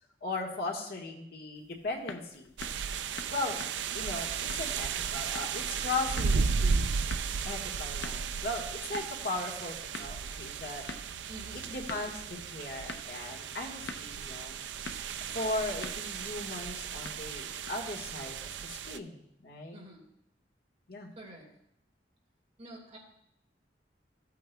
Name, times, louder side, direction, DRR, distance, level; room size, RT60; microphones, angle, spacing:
voice 1, 0.2-2.5 3.3-3.6 3.9-7.0 7.4-10.8 11.5-14.6 15.3-19.8 20.9-21.1, left 2 dB, 60° left, 0 dB, 1.6 m, -37 dB
sound 1, 1.5-18.0, left 3 dB, 75° left, 0.7 m, -49 dB
sound 2, 2.6-19.0, right 5 dB, 85° right, 0.4 m, -35 dB
voice 2, 11.3-11.7 13.6-13.7 19.7-20.0 21.2-21.5 22.6-23.0, right 1 dB, 35° right, -1 dB, 2.0 m, -48 dB
14.5 x 8.5 x 2.3 m, 0.76 s
head